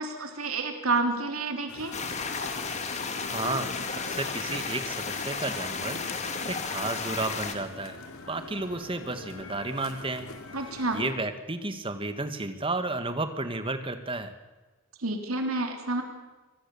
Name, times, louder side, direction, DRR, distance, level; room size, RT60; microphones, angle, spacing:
voice 1, 0.0-1.9 10.5-11.0 15.0-16.0, right 3 dB, 85° right, 5 dB, 3.5 m, -29 dB
sound 1, 1.7-11.1, left 3 dB, 90° left, 2.6 m, -43 dB
sound 2, 1.9-7.5, left 5 dB, 30° left, 2.1 m, -33 dB
voice 2, 3.3-6.0 6.4-10.3 10.9-14.3, right 2 dB, 25° right, 9 dB, 1.8 m, -32 dB
25.0 x 19.5 x 7.1 m, 1.2 s
head